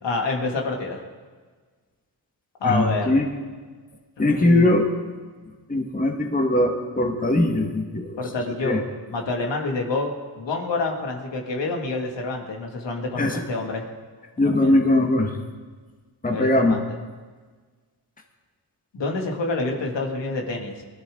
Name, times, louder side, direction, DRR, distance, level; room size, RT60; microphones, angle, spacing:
voice 1, 0.0-1.0 2.6-3.2 4.2-4.7 8.2-8.8 9.1-10.1 10.4-13.8 14.4-14.7 16.2-16.8 18.9-20.8, left 3 dB, 70° left, 1 dB, 2.4 m, -27 dB
voice 2, 2.6-3.3 4.2-4.9 5.7-8.2 8.6-8.8 13.2-13.4 14.4-15.4 16.2-16.8, left 1 dB, 20° left, 2 dB, 1.8 m, -20 dB
20.5 x 12.5 x 3.9 m, 1.4 s
cardioid pair, 80°, 45 cm